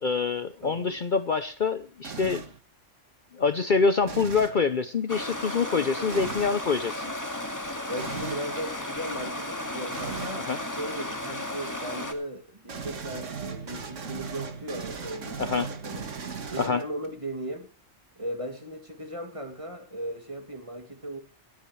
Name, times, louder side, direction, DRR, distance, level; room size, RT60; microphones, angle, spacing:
voice 1, 0.0-2.4 3.3-7.0 10.5-10.6 15.4-15.7 16.6-16.8, left 5 dB, 45° left, 0.8 m, -26 dB
voice 2, 0.6-1.0 6.0-6.3 7.9-16.1 16.5-17.7 18.2-21.2, right 1 dB, 25° right, 2.7 m, -37 dB
sound 1, 2.0-2.6 4.0-4.6 6.1-6.6 8.0-8.5 9.9-10.4 12.7-17.1, right 5 dB, 70° right, 1.9 m, -37 dB
Stream, 5.1-12.1, left 1 dB, 15° left, 2.0 m, -34 dB
26.5 x 9.5 x 3.2 m
omnidirectional pair, 1.3 m